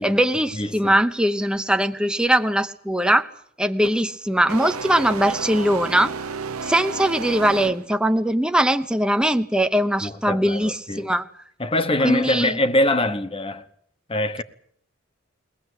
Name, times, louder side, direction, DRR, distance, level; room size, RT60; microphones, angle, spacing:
voice 1, 0.0-3.3 3.6-6.1 6.6-11.3 12.0-12.6, right 1 dB, 5° right, 0.8 m, -21 dB
voice 2, 0.5-1.0 10.0-11.1 11.6-13.7 14.1-14.4, left 1 dB, 25° left, 1.1 m, -23 dB
sound 1, 3.8-4.0 4.5-8.1, right 4 dB, 90° right, 1.0 m, -32 dB
22.0 x 18.5 x 8.1 m
head